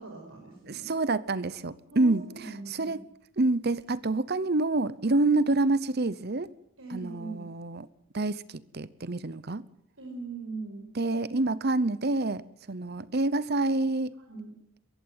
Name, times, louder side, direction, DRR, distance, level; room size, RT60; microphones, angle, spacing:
voice 1, 0.0-0.9 1.9-3.0 6.8-7.4 10.0-10.9 14.3-14.5, right 4 dB, 70° right, 5.4 m, -40 dB
voice 2, 0.7-3.0 3.4-6.5 6.9-7.9 8.1-9.7 11.0-14.1, right 2 dB, 45° right, 0.8 m, -27 dB
22.5 x 15.0 x 9.5 m
head